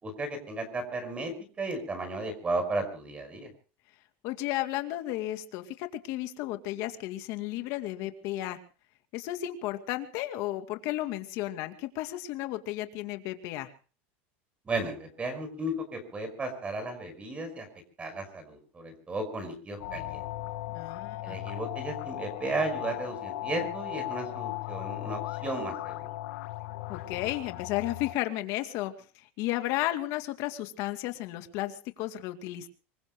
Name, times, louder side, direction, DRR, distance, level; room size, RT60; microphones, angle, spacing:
voice 1, 0.0-3.5 14.7-17.7 18.0-20.3 21.2-26.1, right 2 dB, 20° right, 9 dB, 5.5 m, -34 dB
voice 2, 4.2-8.6 9.1-13.7 20.7-21.4 26.9-28.9 29.4-32.7, left 15 dB, 55° left, 8 dB, 2.4 m, -33 dB
sound 1, 19.8-28.1, left 17 dB, 90° left, 2.0 m, -37 dB
26.0 x 23.0 x 2.2 m, 0.38 s
supercardioid pair, 145°, 6 cm